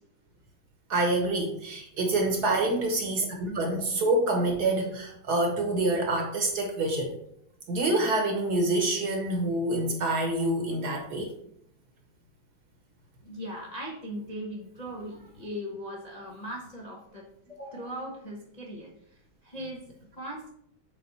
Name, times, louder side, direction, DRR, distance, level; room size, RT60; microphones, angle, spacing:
voice 1, 0.9-7.1 7.7-11.3, right 2 dB, 55° right, 2 dB, 1.5 m, -27 dB
voice 2, 13.2-18.9 19.4-19.8 20.2-20.5, equal, 30° left, -3 dB, 0.7 m, -39 dB
7.6 x 3.7 x 4.1 m, 0.71 s
omnidirectional pair, 2.3 m